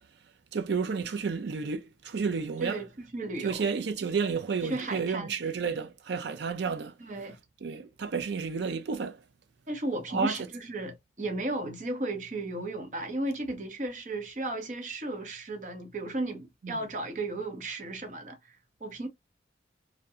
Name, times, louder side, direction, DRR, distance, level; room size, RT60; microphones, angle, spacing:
voice 1, 0.5-2.8 3.4-6.9 7.6-9.2 10.1-10.4 16.6-16.8, right 5 dB, 75° right, 0.4 m, -31 dB
voice 2, 3.1-3.6 4.6-5.3 7.0-7.4 9.7-18.5 18.8-19.1, right 2 dB, 45° right, 0.7 m, -34 dB
2.7 x 2.2 x 2.3 m
head